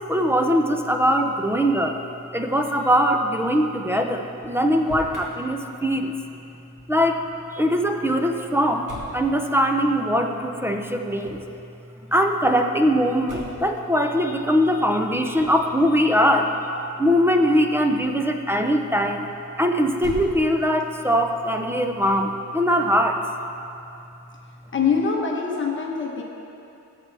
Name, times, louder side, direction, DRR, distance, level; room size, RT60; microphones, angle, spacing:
voice 1, 0.0-2.0 2.3-6.1 6.9-7.2 7.5-11.4 12.1-16.5 17.0-19.3 19.6-23.2, equal, 10° right, 4 dB, 0.5 m, -21 dB
Motor vehicle (road), 4.7-5.3 8.8-9.2 11.2-11.6 13.3-13.7 15.3-15.7 19.9-20.8, right 1 dB, 75° right, 2.2 m, -37 dB
voice 2, 24.7-26.2, left 5 dB, 40° left, 0 dB, 1.0 m, -23 dB
16.5 x 7.5 x 3.4 m, 2.8 s
wide cardioid pair, 165°, 32 cm